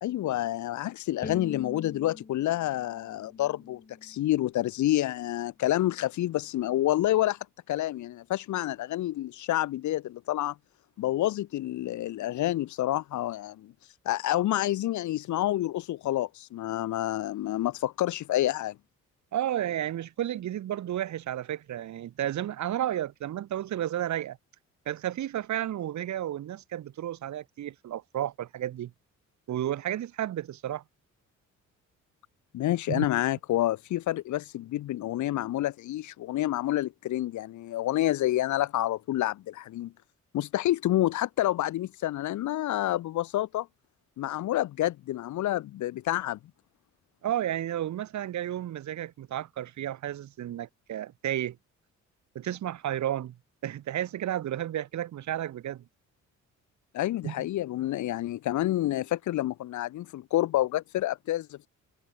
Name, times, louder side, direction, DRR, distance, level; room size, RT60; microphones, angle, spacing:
voice 1, 0.0-7.4 7.7-10.5 11.0-13.7 14.0-18.8 32.5-39.9 40.3-43.7 44.2-46.4 56.9-61.7, left 14 dB, 70° left, 1.0 m, -28 dB
Bowed string instrument, 1.2-4.4, left 5 dB, 30° left, 3.9 m, -44 dB
voice 2, 19.3-24.4 24.9-28.9 29.5-30.8 32.9-33.0 47.2-51.6 52.3-53.4 53.6-55.8 57.2-57.3, right 11 dB, 70° right, 2.3 m, -32 dB
cardioid pair, 90°, 30 cm